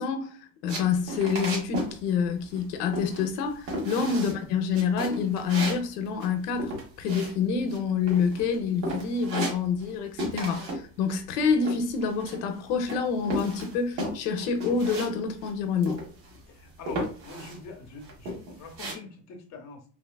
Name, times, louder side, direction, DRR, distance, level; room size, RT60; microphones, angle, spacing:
voice 1, 0.0-6.7 7.0-16.0, left 6 dB, 75° left, 0.7 m, -27 dB
sound 1, 0.7-2.0 2.2-2.7 2.9-3.4 3.7-4.4 4.7-7.8 8.1-8.5 8.8-9.9 10.2-10.8 11.1-12.5 12.9-15.1 15.4-15.5 15.8-16.4 16.9-17.6 18.0-18.9, right 1 dB, 85° right, 1.3 m, -34 dB
voice 2, 16.5-19.8, left 4 dB, 35° left, 0.7 m, -45 dB
3.1 x 2.2 x 2.2 m
supercardioid pair, 110°, 48 cm